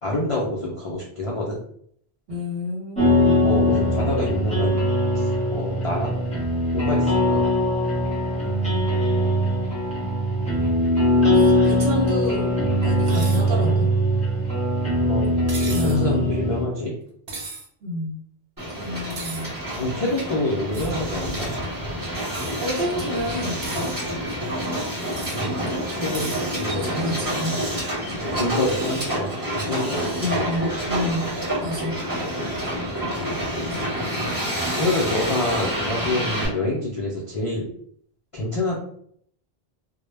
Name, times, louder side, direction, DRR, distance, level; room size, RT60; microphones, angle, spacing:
voice 1, 0.0-1.6 3.4-4.8 5.2-6.1 6.7-7.5 15.1-16.9 19.8-21.5 25.3-25.6 26.0-26.3 26.6-26.9 28.4-30.6 34.7-37.7 38.3-38.8, left 2 dB, 55° left, -4 dB, 0.3 m, -27 dB
voice 2, 2.3-3.4 11.3-13.9 15.6-16.3 17.8-18.2 18.7-19.5 22.6-23.6 26.4-27.6 30.2-31.3 31.6-32.0, left 1 dB, 70° right, -3 dB, 1.0 m, -29 dB
sound 1, 3.0-16.6, equal, 5° left, 0.7 m, -21 dB
sound 2, 13.1-13.4 15.5-16.0 17.3-17.7 19.1-19.4 20.7-21.0 22.3-22.5 23.4-23.9 25.1-25.4 26.1-26.4, right 3 dB, 50° right, 0.5 m, -36 dB
Hiss, 18.6-36.5, equal, 20° right, 0.9 m, -28 dB
2.1 x 2.0 x 3.2 m, 0.65 s
omnidirectional pair, 1.1 m